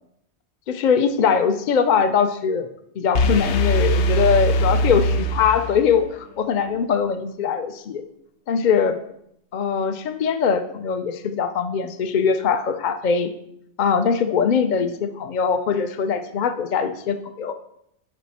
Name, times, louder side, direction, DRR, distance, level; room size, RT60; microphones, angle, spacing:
voice 1, 0.7-2.7 3.0-8.0 8.5-8.9 9.5-13.3 13.8-17.5, left 6 dB, 55° left, 8 dB, 0.5 m, -21 dB
sound 1, 3.2-6.1, equal, 75° left, 0.9 m, -21 dB
11.0 x 4.2 x 4.1 m, 0.75 s
omnidirectional pair, 1.2 m